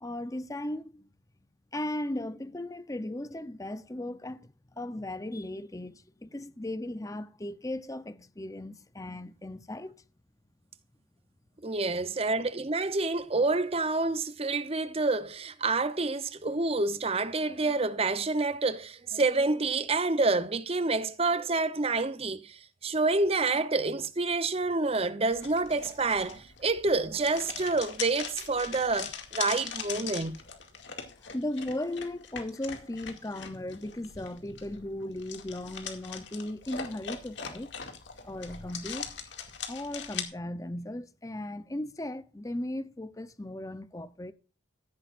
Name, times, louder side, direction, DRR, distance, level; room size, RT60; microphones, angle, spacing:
voice 1, 0.0-1.1 1.7-10.0 31.2-37.7 38.2-39.3 39.7-44.3, left 1 dB, 20° left, 0.6 m, -37 dB
voice 2, 11.6-30.4, right 3 dB, 30° right, 0.7 m, -28 dB
sound 1, 25.3-40.2, left 7 dB, 70° left, 2.2 m, -41 dB
14.5 x 11.0 x 2.5 m
head